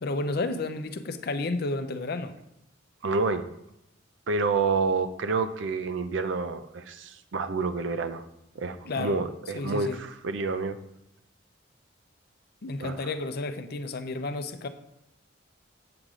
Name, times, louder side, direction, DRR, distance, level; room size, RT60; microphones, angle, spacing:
voice 1, 0.0-2.3 8.9-9.2 9.5-10.0 12.6-14.7, left 2 dB, 55° left, 9 dB, 0.5 m, -31 dB
voice 2, 3.0-3.5 4.3-8.3 8.6-10.8 12.8-13.0, right 4 dB, 70° right, 11 dB, 0.5 m, -28 dB
7.8 x 6.5 x 3.7 m, 0.81 s
head